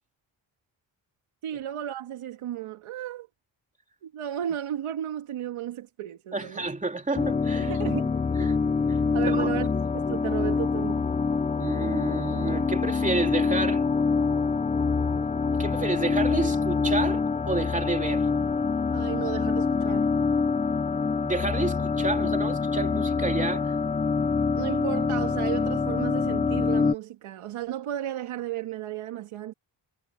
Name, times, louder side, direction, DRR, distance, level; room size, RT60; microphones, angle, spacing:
voice 1, 1.4-3.3 4.0-6.7 7.6-8.1 8.4-8.5 9.1-9.7 9.9-11.0 18.9-20.1 24.6-29.5, right 12 dB, 85° right, 1.8 m, -34 dB
voice 2, 6.3-7.7 8.4-8.5 8.9-9.5 11.6-13.8 15.1-18.3 21.2-23.8, right 2 dB, 15° right, 3.1 m, -30 dB
sound 1, 7.2-27.0, left 5 dB, 15° left, 0.4 m, -25 dB
cardioid pair, 110°, 48 cm